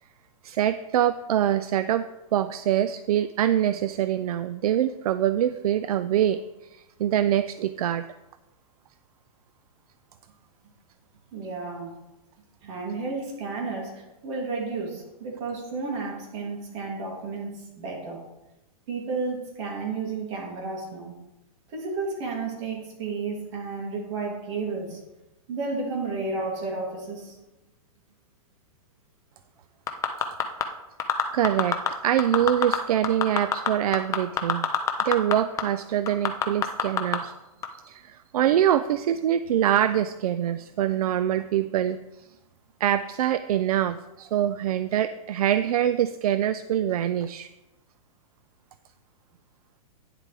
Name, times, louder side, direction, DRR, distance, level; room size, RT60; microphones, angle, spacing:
voice 1, 0.4-2.0 2.3-6.4 6.7-8.1 31.3-31.8 32.0-34.7 35.0-37.3 37.8-42.0 42.8-47.5, right 11 dB, 75° right, 13 dB, 0.4 m, -24 dB
voice 2, 11.3-11.9 12.6-18.2 18.9-21.1 21.7-25.0 25.5-27.4, right 4 dB, 50° right, -1 dB, 3.0 m, -32 dB
sound 1, 29.9-30.6 31.0-31.9 32.2-32.8 33.0-35.3 35.6-35.7 36.1-37.2 37.6-37.7, left 9 dB, 15° left, 0.6 m, -23 dB
9.9 x 7.4 x 3.5 m, 0.99 s
hypercardioid pair, 145°, 19 cm